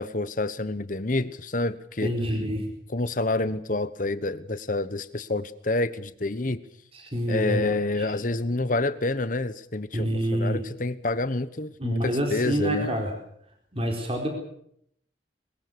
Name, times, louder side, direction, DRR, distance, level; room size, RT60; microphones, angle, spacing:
voice 1, 0.0-2.1 2.9-6.6 7.3-12.9, left 2 dB, 45° left, 14 dB, 1.1 m, -28 dB
voice 2, 2.0-2.7 6.9-8.1 9.9-10.6 11.8-13.1 13.7-14.3, equal, 30° right, 2 dB, 4.4 m, -27 dB
22.5 x 21.0 x 7.0 m, 0.71 s
head